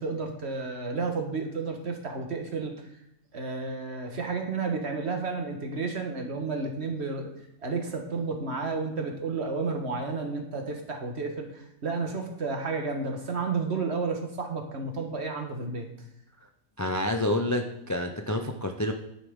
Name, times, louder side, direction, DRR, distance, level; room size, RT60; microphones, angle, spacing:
voice 1, 0.0-2.7 3.3-7.3 7.6-15.9, right 4 dB, 50° right, 3 dB, 1.7 m, -31 dB
voice 2, 16.8-18.9, left 1 dB, 25° left, 5 dB, 0.4 m, -28 dB
10.5 x 9.3 x 3.7 m, 0.83 s
omnidirectional pair, 1.5 m